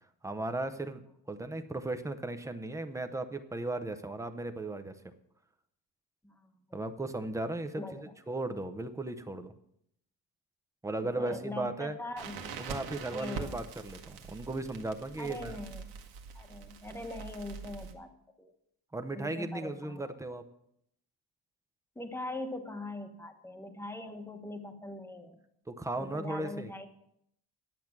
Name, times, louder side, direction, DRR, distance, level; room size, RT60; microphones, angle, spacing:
voice 1, 0.2-1.0 1.3-5.1 6.7-9.5 10.8-12.0 12.6-15.6 18.9-20.4 25.7-26.7, right 2 dB, 10° right, 9 dB, 0.6 m, -36 dB
voice 2, 11.0-12.6 13.1-13.5 15.2-15.8 16.3-18.1 18.4-18.5 19.2-20.1 21.9-25.4 26.0-26.9, left 2 dB, 5° left, 6 dB, 1.0 m, -41 dB
Crackle, 12.2-17.9, right 6 dB, 90° right, 1.5 m, -44 dB
11.0 x 8.1 x 5.9 m, 0.75 s
cardioid pair, 160°, 37 cm